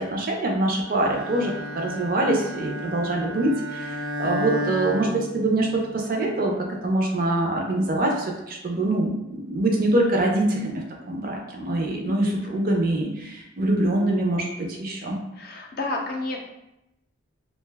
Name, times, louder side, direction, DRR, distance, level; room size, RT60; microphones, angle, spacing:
voice 1, 0.0-6.6 6.8-15.2, right 1 dB, 45° right, 0 dB, 0.5 m, -24 dB
Bowed string instrument, 0.9-5.9, left 1 dB, 90° right, 0.8 m, -32 dB
voice 2, 15.4-16.4, left 2 dB, 50° left, 0 dB, 0.4 m, -30 dB
2.4 x 2.2 x 3.3 m, 0.90 s
head